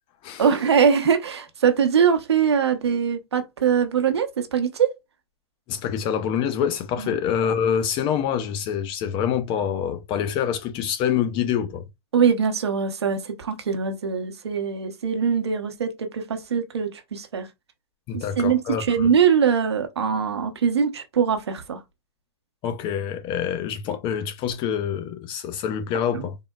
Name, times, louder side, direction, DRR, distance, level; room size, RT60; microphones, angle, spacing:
voice 1, 0.4-4.9 7.0-7.1 12.1-17.5 18.1-21.8 26.1-26.2, right 7 dB, 90° right, 0.7 m, -22 dB
voice 2, 5.7-11.8 18.1-19.1 22.6-26.4, left 8 dB, 40° left, 0.6 m, -26 dB
3.7 x 2.1 x 2.3 m
hypercardioid pair, 115°, 13 cm